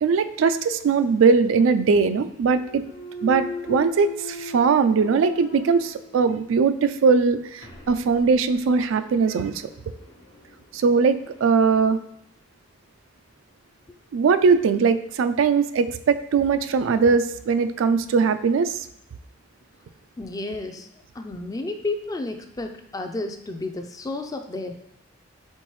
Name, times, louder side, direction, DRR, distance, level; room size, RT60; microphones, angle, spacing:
voice 1, 0.0-2.8 3.2-9.6 10.7-12.0 14.1-18.9, right 5 dB, 90° right, 11 dB, 0.3 m, -20 dB
Thump thud, 2.4-6.5 6.9-11.6, left 3 dB, 80° left, 1.0 m, -39 dB
voice 2, 20.2-24.7, left 2 dB, 20° left, 6 dB, 0.3 m, -32 dB
4.3 x 3.9 x 3.1 m, 0.78 s
head